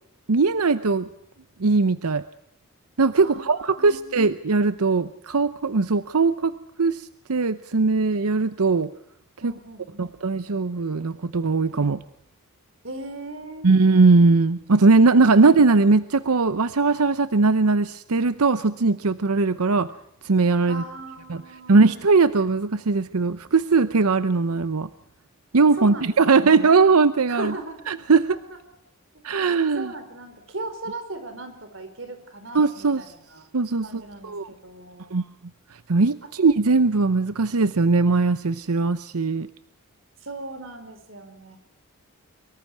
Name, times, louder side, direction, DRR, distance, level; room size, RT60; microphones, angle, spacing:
voice 1, 0.3-1.1 1.6-2.2 3.0-8.9 9.4-9.5 10.0-12.0 13.6-19.9 20.2-20.8 21.3-21.4 21.7-24.9 25.5-27.5 27.9-28.4 29.2-29.9 32.5-33.0 33.5-34.5 35.1-35.2 35.9-39.5, right 4 dB, 85° right, 13 dB, 0.8 m, -20 dB
voice 2, 3.2-4.2 9.4-10.1 12.8-13.7 20.7-21.8 25.8-26.8 27.3-27.8 28.5-28.6 29.3-33.5 33.8-35.2 40.2-41.6, right 2 dB, 60° right, 7 dB, 4.7 m, -38 dB
24.0 x 23.5 x 4.7 m, 0.70 s
head